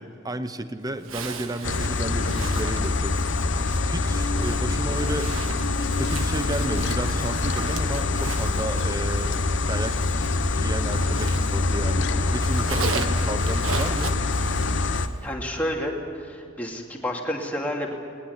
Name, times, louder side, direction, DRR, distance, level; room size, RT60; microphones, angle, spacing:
voice 1, 0.0-5.3 5.9-14.1, right 1 dB, 20° right, 10 dB, 0.9 m, -33 dB
Zipper (clothing), 1.0-11.9 12.2-15.2, right 4 dB, 80° right, 1.6 m, -37 dB
sound 1, 1.6-15.1, left 3 dB, 60° left, 1.0 m, -25 dB
voice 2, 15.2-17.9, left 1 dB, 10° left, -1 dB, 2.8 m, -30 dB
20.0 x 20.0 x 9.8 m, 2.4 s
head